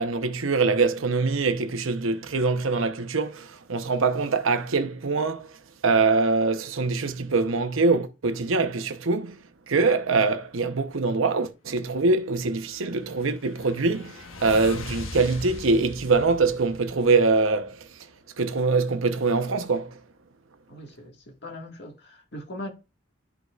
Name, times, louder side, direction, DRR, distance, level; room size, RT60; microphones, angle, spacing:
voice 1, 0.0-5.5 5.8-9.4 9.7-17.8 18.4-20.0, right 3 dB, 85° right, 0.9 m, -24 dB
sound 1, 12.7-17.7, left 3 dB, 85° left, 1.3 m, -40 dB
voice 2, 20.7-22.7, left 1 dB, 55° left, 1.7 m, -40 dB
13.0 x 4.7 x 2.4 m
head